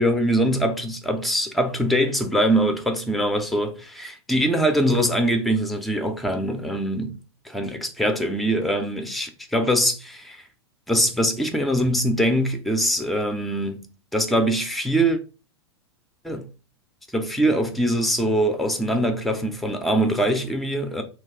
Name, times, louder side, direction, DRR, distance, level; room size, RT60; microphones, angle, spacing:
voice 1, 0.0-7.2 7.4-10.4 10.9-13.9 14.1-15.2 16.2-16.5 17.1-21.0, right 1 dB, ahead, 0.5 m, -23 dB
2.8 x 2.3 x 3.6 m
figure-of-eight pair, 95°, 14 cm